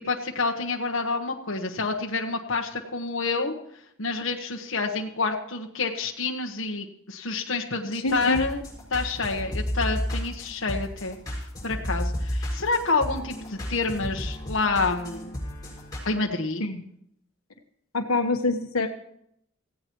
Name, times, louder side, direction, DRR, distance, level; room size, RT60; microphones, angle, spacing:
voice 1, 0.1-3.5 4.0-8.6 8.9-11.2 11.6-15.3 16.0-16.7, left 3 dB, 60° left, 2 dB, 1.3 m, -28 dB
voice 2, 7.9-8.4 16.6-16.8 17.9-18.9, left 3 dB, 85° left, 5 dB, 1.4 m, -25 dB
sound 1, 8.1-16.0, equal, 15° left, 6.2 m, -32 dB
17.5 x 16.0 x 3.1 m, 0.72 s
head